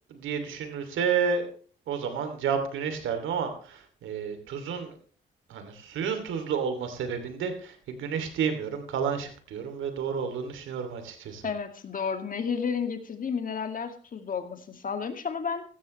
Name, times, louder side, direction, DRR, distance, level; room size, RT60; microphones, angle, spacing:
voice 1, 0.1-1.5 1.9-4.9 5.5-11.4, right 6 dB, 80° right, 7 dB, 2.8 m, -31 dB
voice 2, 11.4-15.6, left 6 dB, 45° left, 7 dB, 2.2 m, -32 dB
16.5 x 13.5 x 3.2 m, 0.41 s
cardioid pair, 90°, 20 cm